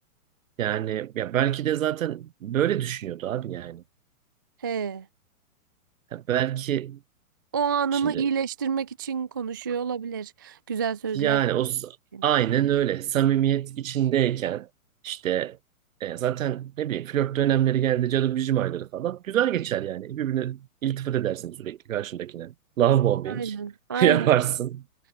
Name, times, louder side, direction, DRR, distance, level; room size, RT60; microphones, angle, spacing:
voice 1, 0.6-3.8 6.1-7.0 7.9-8.3 11.1-12.0 12.2-14.7 15.0-15.6 16.0-23.5 23.9-24.8, right 11 dB, 60° right, 2.4 m, -25 dB
voice 2, 4.6-5.1 7.5-11.4 12.1-12.2 23.3-24.3, right 6 dB, 15° right, 0.4 m, -28 dB
hypercardioid pair, 155°, 44 cm